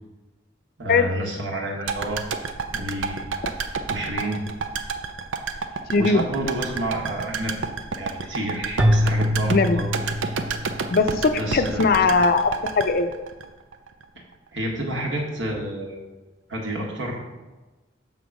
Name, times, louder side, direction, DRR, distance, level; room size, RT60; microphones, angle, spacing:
voice 1, 0.8-2.2 2.7-3.3 3.9-4.4 6.0-7.6 7.9-9.9 11.4-12.0 14.5-16.0 16.5-17.2, right 1 dB, 65° right, -1 dB, 1.6 m, -29 dB
sound 1, 1.9-14.0 14.3-14.4, right 5 dB, 85° right, 0.6 m, -30 dB
voice 2, 5.9-6.3 9.5-9.8 10.9-13.1, left 4 dB, 50° left, 9 dB, 0.5 m, -20 dB
Keyboard (musical), 8.8-11.0, equal, 5° right, 0.4 m, -23 dB
7.1 x 3.9 x 6.1 m, 1.2 s
head